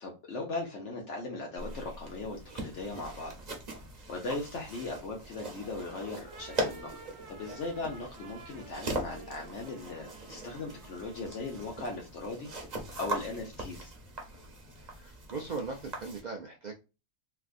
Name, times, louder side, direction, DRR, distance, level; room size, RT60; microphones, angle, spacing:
voice 1, 0.0-3.3 4.1-6.9 7.3-12.5 13.0-13.9, left 3 dB, 65° left, 0 dB, 1.1 m, -38 dB
sound 1, 1.6-16.2, right 1 dB, 40° right, 0.8 m, -41 dB
sound 2, 6.2-12.1, right 4 dB, 85° right, 1.2 m, -52 dB
voice 2, 14.8-16.8, right 4 dB, 70° right, 2 dB, 0.4 m, -39 dB
3.4 x 2.4 x 2.4 m, 0.29 s
omnidirectional pair, 1.3 m